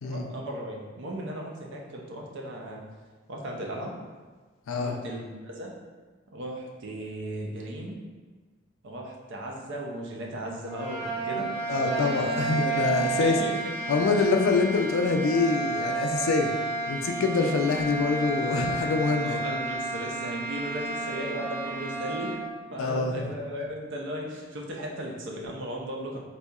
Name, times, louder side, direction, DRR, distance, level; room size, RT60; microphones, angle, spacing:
voice 1, 0.0-2.8 3.3-4.0 4.7-5.7 6.3-8.0 8.8-13.7 14.1-14.4 19.2-22.4 22.7-26.2, right 1 dB, 60° right, 0 dB, 0.5 m, -36 dB
sound 1, 10.6-22.5, right 3 dB, 10° right, 0.6 m, -31 dB
voice 2, 11.7-13.4 13.9-16.5 16.9-19.4 22.8-23.2, left 4 dB, 70° left, 3 dB, 0.4 m, -25 dB
4.0 x 2.7 x 2.3 m, 1.4 s
head